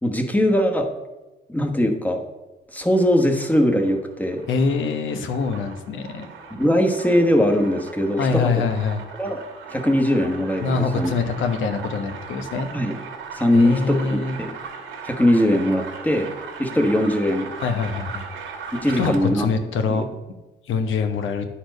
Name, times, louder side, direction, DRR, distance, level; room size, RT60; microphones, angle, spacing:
voice 1, 0.0-0.9 1.5-2.2 2.7-4.5 6.5-8.5 9.2-9.4 9.7-11.1 12.7-13.0 13.3-14.1 14.4-14.5 15.0-16.3 16.6-17.5 18.7-19.5 19.9-20.0, equal, 10° left, 4 dB, 1.1 m, -20 dB
sound 1, 2.8-19.5, right 5 dB, 80° right, 1.6 m, -38 dB
voice 2, 4.5-6.3 8.2-9.0 10.6-12.7 13.5-14.4 17.6-18.2 19.0-20.1 20.7-21.5, left 5 dB, 80° left, 7 dB, 1.0 m, -24 dB
10.0 x 4.3 x 5.2 m, 1.1 s
cardioid pair, 90°, 20 cm